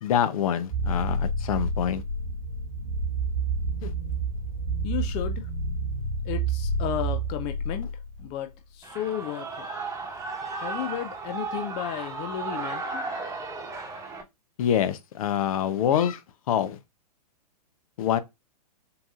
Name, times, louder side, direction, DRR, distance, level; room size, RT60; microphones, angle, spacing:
voice 1, 0.0-2.0 3.8-3.9 14.6-16.2 16.5-16.8 18.0-18.2, left 9 dB, 60° left, 0.7 m, -25 dB
sound 1, 0.7-8.2, right 2 dB, 90° right, 2.7 m, -29 dB
voice 2, 4.8-5.5 6.2-7.9 8.2-9.7 10.6-13.1, left 11 dB, 30° left, 0.4 m, -33 dB
Shout / Cheering, 8.8-14.2, right 4 dB, 15° right, 1.1 m, -34 dB
6.9 x 2.6 x 2.4 m
hypercardioid pair, 115°, 21 cm